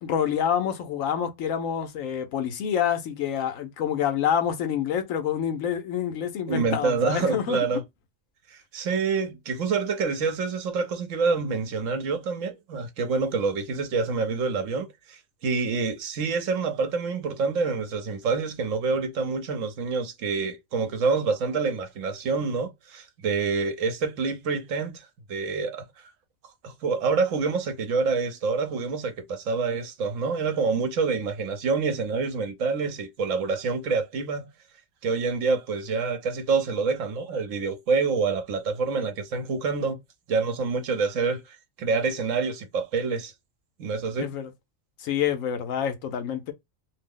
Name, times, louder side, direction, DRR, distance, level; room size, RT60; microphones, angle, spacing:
voice 1, 0.0-7.8 44.2-44.5 45.0-46.5, left 9 dB, 80° left, 1.0 m, -27 dB
voice 2, 6.5-7.8 8.5-25.0 25.3-25.8 26.6-34.5 35.0-40.0 40.3-43.3 43.8-44.3, right 4 dB, 75° right, 1.1 m, -27 dB
2.7 x 2.0 x 3.5 m
omnidirectional pair, 1.4 m